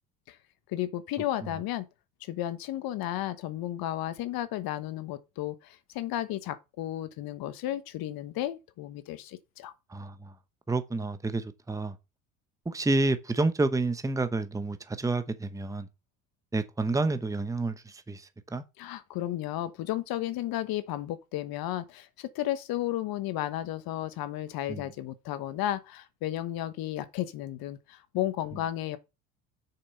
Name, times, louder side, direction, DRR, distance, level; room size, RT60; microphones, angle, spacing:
voice 1, 0.7-1.8 2.2-9.7 18.8-29.0, left 13 dB, 55° left, 1.2 m, -33 dB
voice 2, 9.9-10.3 10.7-12.0 12.6-15.9 16.5-18.6 24.7-24.8, right 2 dB, 10° right, 1.0 m, -29 dB
6.6 x 5.9 x 5.5 m
hypercardioid pair, 70°, 42 cm